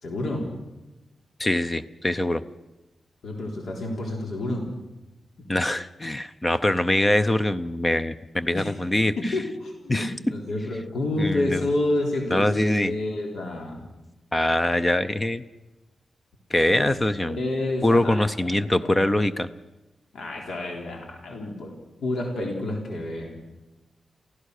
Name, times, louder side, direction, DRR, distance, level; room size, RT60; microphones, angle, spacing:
voice 1, 0.0-0.5 3.2-4.7 8.5-8.7 9.2-13.9 16.7-16.9 17.3-19.1 20.1-21.7 22.0-23.3, left 2 dB, 70° left, 0 dB, 3.6 m, -29 dB
voice 2, 1.4-2.4 5.5-9.3 9.9-10.1 11.2-11.7 12.3-12.9 14.3-15.4 16.5-17.4 17.8-19.5, left 1 dB, 15° left, 12 dB, 0.6 m, -23 dB
29.0 x 15.5 x 6.6 m, 1.0 s
wide cardioid pair, 180°, 0 cm